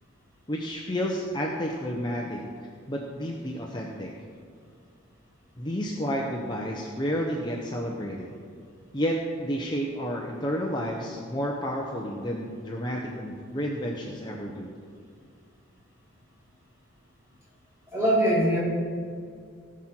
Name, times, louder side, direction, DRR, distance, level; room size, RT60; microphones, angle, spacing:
voice 1, 0.5-2.4 2.9-4.1 5.6-8.3 8.9-14.8, equal, 20° left, -1 dB, 0.8 m, -31 dB
voice 2, 17.9-18.6, equal, 15° right, -8 dB, 3.2 m, -22 dB
18.0 x 6.2 x 4.4 m, 2.2 s
head